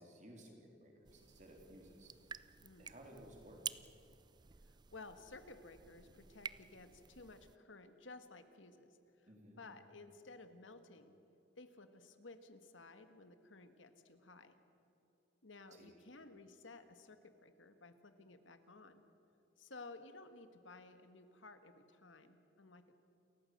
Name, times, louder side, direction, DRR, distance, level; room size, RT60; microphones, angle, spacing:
voice 1, 0.0-2.1 2.8-3.6 9.3-9.6 15.7-16.0, right 1 dB, 40° right, 2 dB, 3.6 m, -57 dB
sound 1, 1.0-7.6, right 7 dB, 20° right, 0.4 m, -51 dB
voice 2, 2.6-2.9 4.6-9.3 9.6-11.1 11.6-14.6 15.4-19.0 19.6-22.9, left 3 dB, 80° left, 9 dB, 1.7 m, -56 dB
29.0 x 15.0 x 7.9 m, 2.9 s
head